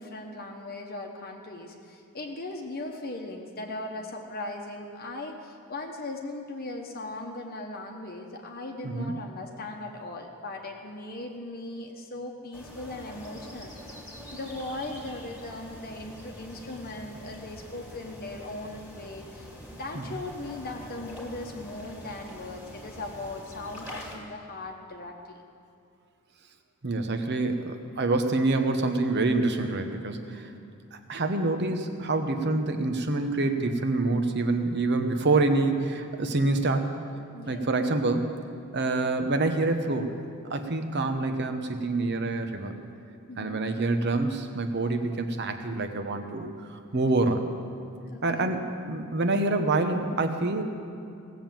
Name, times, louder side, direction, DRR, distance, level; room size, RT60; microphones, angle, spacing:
voice 1, 0.0-14.0 14.3-25.4 37.3-37.7 43.3-43.6 48.1-48.5, left 2 dB, 45° left, 2 dB, 1.0 m, -38 dB
sound 1, 12.5-24.2, equal, 5° right, 2.3 m, -45 dB
voice 2, 26.8-30.5 30.9-36.9 37.5-38.3 38.7-40.2 40.5-42.8 43.4-47.5 48.2-50.6, right 2 dB, 50° right, 6 dB, 0.9 m, -26 dB
17.5 x 7.3 x 7.5 m, 2.5 s
head